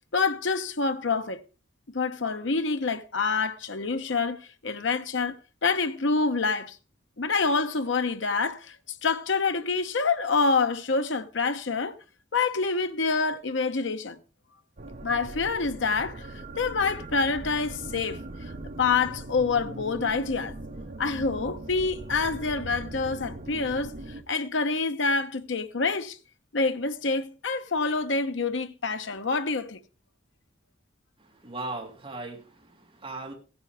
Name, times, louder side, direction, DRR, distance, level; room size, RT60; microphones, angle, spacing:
voice 1, 0.1-1.4 1.9-5.4 5.6-6.8 7.2-12.0 12.3-14.2 15.0-18.2 18.8-20.5 21.0-26.2 26.5-29.8, left 4 dB, 70° left, 0.9 m, -27 dB
sound 1, 14.8-24.2, right 2 dB, 45° right, 0.9 m, -40 dB
voice 2, 31.4-33.3, right 2 dB, 30° right, 3.2 m, -38 dB
16.0 x 9.7 x 3.5 m
head